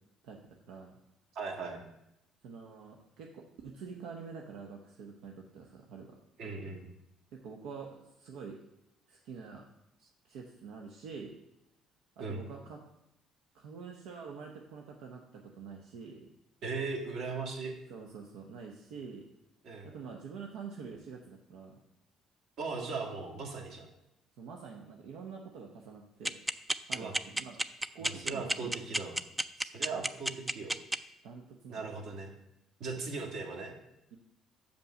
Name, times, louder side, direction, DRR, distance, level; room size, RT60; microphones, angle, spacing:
voice 1, 1.3-1.8 6.4-6.8 12.2-12.4 16.6-17.7 19.6-19.9 22.6-23.9 26.9-27.1 28.0-29.2 29.6-30.7 31.7-32.3 32.8-33.7, right 4 dB, 65° right, 1 dB, 1.9 m, -38 dB
voice 2, 2.4-6.1 7.3-7.9 8.2-8.6 9.1-9.7 10.2-11.4 12.2-12.8 13.5-16.3 17.9-19.2 19.8-21.8 24.4-26.4 26.9-27.5 27.8-28.7 29.9-30.0 31.2-31.8 34.1-34.2, right 5 dB, 90° right, 0 dB, 0.8 m, -46 dB
sound 1, 26.2-30.9, right 1 dB, 10° right, 0.3 m, -29 dB
6.9 x 5.3 x 6.4 m, 0.85 s
cardioid pair, 120°, 0 cm